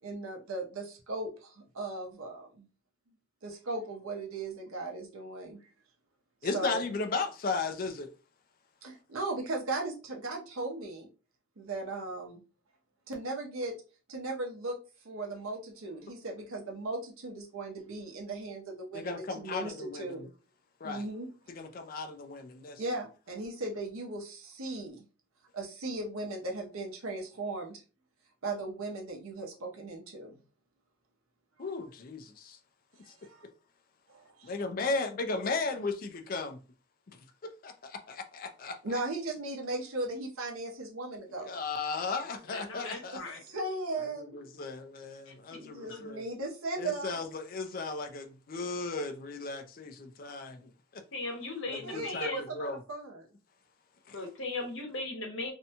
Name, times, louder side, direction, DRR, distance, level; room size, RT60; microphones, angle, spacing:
voice 1, 0.0-2.7 3.4-5.6 6.4-6.8 8.8-11.1 11.6-12.4 13.1-13.8 14.1-14.8 15.0-20.3 20.8-21.3 22.8-25.0 25.5-27.8 28.4-30.4 33.0-33.5 34.1-34.6 38.8-41.5 43.1-44.4 45.5-47.2 51.7-53.3, right 2 dB, 85° right, 0.8 m, -37 dB
voice 2, 6.4-8.1 18.9-20.2 20.8-21.1 21.5-22.8 31.6-32.6 33.1-33.2 34.4-35.9 36.3-36.5 37.6-38.8 41.4-43.2 44.1-46.2 46.8-51.0 51.7-52.8 54.1-54.2, left 3 dB, 40° left, 0.4 m, -35 dB
voice 3, 42.5-43.4 45.3-45.6 45.9-46.0 51.1-52.4 54.1-55.5, left 3 dB, 65° left, 0.9 m, -38 dB
2.6 x 2.2 x 2.7 m
head